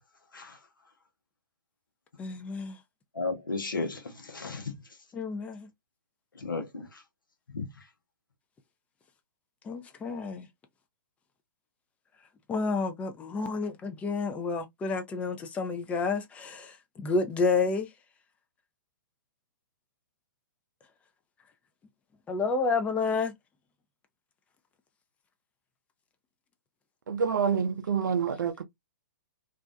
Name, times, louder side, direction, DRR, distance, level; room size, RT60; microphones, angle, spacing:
voice 1, 2.2-2.8 5.1-5.7 9.6-10.5 12.5-17.9 22.3-23.3, left 4 dB, 10° left, 0.4 m, -30 dB
voice 2, 3.1-4.8 6.4-7.0 7.5-7.7, left 3 dB, 90° left, 0.8 m, -34 dB
voice 3, 27.1-28.6, right 6 dB, 70° right, 0.5 m, -27 dB
2.5 x 2.1 x 2.4 m
hypercardioid pair, 130°, 11 cm